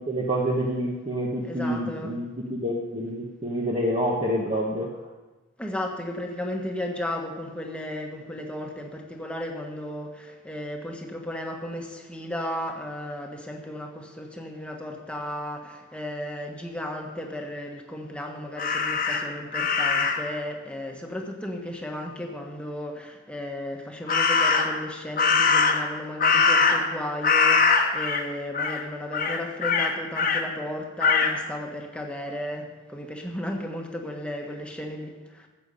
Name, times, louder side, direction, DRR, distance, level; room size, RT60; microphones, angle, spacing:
voice 1, 0.0-4.9, equal, 30° right, -2 dB, 1.2 m, -27 dB
voice 2, 1.4-2.1 5.6-35.5, left 1 dB, 5° left, 1 dB, 1.3 m, -34 dB
Crow, 18.6-20.3 24.1-24.8 25.2-27.0 27.2-28.2 28.5-28.8 29.1-30.4 31.0-31.3, left 4 dB, 45° left, 1.1 m, -22 dB
14.0 x 8.2 x 5.5 m, 1.2 s
head